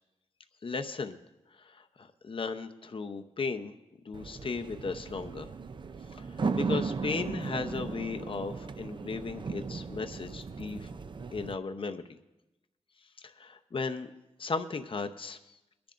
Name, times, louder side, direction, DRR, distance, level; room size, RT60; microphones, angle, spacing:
voice 1, 0.6-1.2 1.6-3.8 4.0-5.5 6.2-6.3 6.5-10.9 11.3-12.0 13.2-14.1 14.4-15.4, left 4 dB, 45° left, 7 dB, 0.8 m, -36 dB
sound 1, 4.1-11.5, right 4 dB, 40° right, 0.5 m, -36 dB
22.5 x 10.5 x 2.5 m, 1.0 s
wide cardioid pair, 80°, 12 cm